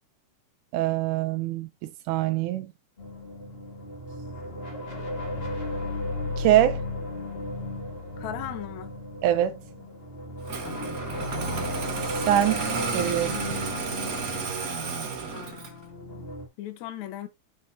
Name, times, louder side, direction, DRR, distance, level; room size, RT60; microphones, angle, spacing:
voice 1, 0.7-2.7 6.4-6.8 9.2-9.6 12.3-12.6 12.9-13.4, right 13 dB, 90° right, 2.2 m, -23 dB
sound 1, 3.0-16.5, left 2 dB, 25° left, 1.4 m, -35 dB
voice 2, 8.2-8.9 10.6-10.9 11.2-11.5 15.3-17.3, left 12 dB, 70° left, 2.3 m, -39 dB
Engine starting, 10.4-15.8, right 4 dB, 60° right, 0.9 m, -32 dB
8.1 x 6.4 x 2.7 m
omnidirectional pair, 3.6 m